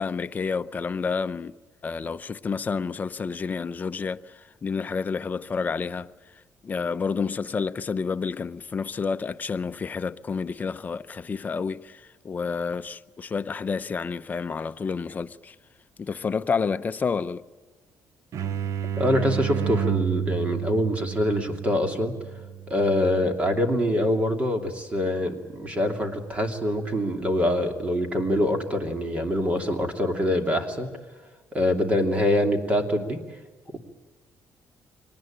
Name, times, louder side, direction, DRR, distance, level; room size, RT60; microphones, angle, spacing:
voice 1, 0.0-1.5 1.8-6.1 6.6-15.6 16.0-17.4, left 5 dB, 30° left, 0.7 m, -29 dB
sound 1, 18.3-23.8, right 9 dB, 60° right, 0.8 m, -31 dB
voice 2, 19.0-22.1 22.7-30.9 31.5-33.2, left 1 dB, 25° right, 2.8 m, -24 dB
24.0 x 19.5 x 8.9 m
cardioid pair, 140°, 6 cm